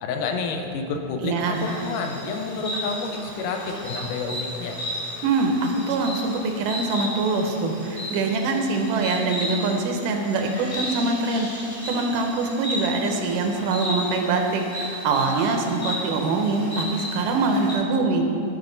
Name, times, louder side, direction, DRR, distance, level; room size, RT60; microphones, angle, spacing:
voice 1, 0.0-4.8, left 4 dB, 80° left, 4 dB, 2.3 m, -29 dB
voice 2, 1.2-1.7 5.2-18.3, right 3 dB, 85° right, 3 dB, 2.4 m, -24 dB
Insect, 1.5-17.7, equal, 15° left, 1.9 m, -34 dB
13.0 x 5.4 x 3.9 m, 2.5 s
omnidirectional pair, 3.7 m